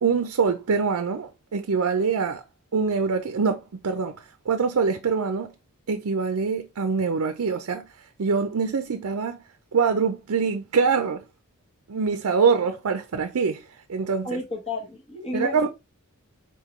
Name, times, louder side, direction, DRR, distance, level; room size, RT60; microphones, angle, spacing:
voice 1, 0.0-2.4 2.7-5.5 5.9-7.9 8.2-9.4 9.7-11.2 11.9-14.4 15.3-15.7, right 5 dB, 70° right, 0.5 m, -24 dB
voice 2, 14.2-15.7, left 1 dB, 30° left, 1.1 m, -31 dB
4.2 x 3.6 x 3.1 m
head